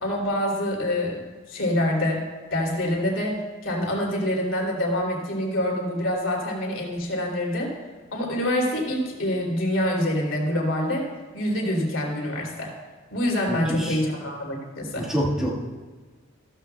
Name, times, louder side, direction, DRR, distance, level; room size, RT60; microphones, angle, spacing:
voice 1, 0.0-1.2 1.5-2.2 2.5-3.4 3.6-7.7 8.1-12.7 13.1-15.1, left 1 dB, 75° left, -1 dB, 2.7 m, -26 dB
voice 2, 13.5-14.0 14.9-15.6, equal, 5° right, -4 dB, 1.5 m, -27 dB
15.0 x 13.0 x 2.2 m, 1.3 s
head